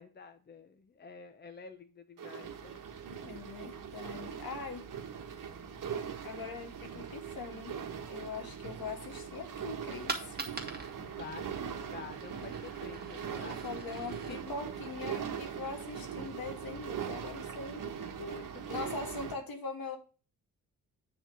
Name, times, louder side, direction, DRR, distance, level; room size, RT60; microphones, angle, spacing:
voice 1, 0.0-2.8 11.0-14.4 18.0-19.0, left 5 dB, 30° left, 8 dB, 0.8 m, -49 dB
sound 1, 2.2-19.3, right 7 dB, 65° right, 1.4 m, -41 dB
voice 2, 3.2-4.9 6.2-7.8 8.1-10.4 13.1-18.1 18.7-20.0, left 4 dB, 75° left, 4 dB, 2.5 m, -42 dB
Coin (dropping), 10.1-15.7, right 4 dB, 25° right, 2.1 m, -45 dB
9.2 x 4.3 x 6.5 m, 0.35 s
wide cardioid pair, 130°, 35 cm